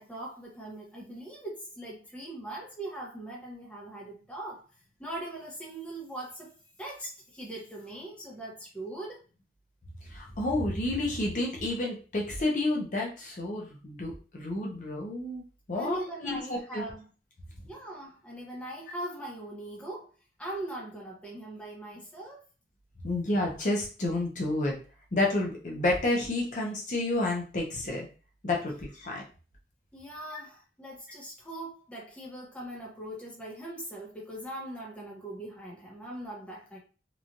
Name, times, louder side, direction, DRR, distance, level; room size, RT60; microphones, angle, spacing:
voice 1, 0.0-4.6 5.0-6.5 6.8-9.2 15.7-17.1 17.7-20.1 20.4-22.4 29.9-36.8, right 1 dB, 5° left, -4 dB, 0.8 m, -40 dB
voice 2, 10.0-15.4 15.7-16.8 23.0-24.7 25.1-28.1 28.4-29.2 30.3-30.4, left 2 dB, 45° left, -1 dB, 0.6 m, -30 dB
3.0 x 2.2 x 2.6 m, 0.36 s
head